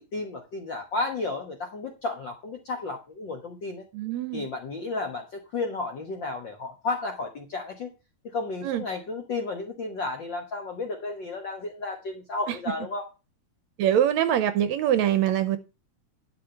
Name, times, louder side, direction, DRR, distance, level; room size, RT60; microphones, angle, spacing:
voice 1, 0.0-3.8 4.3-7.9 8.3-13.0, left 3 dB, 55° left, 1.3 m, -33 dB
voice 2, 3.9-4.5 8.6-8.8 12.5-12.6 13.8-15.6, right 10 dB, 75° right, 1.8 m, -24 dB
11.5 x 5.0 x 6.8 m
omnidirectional pair, 3.6 m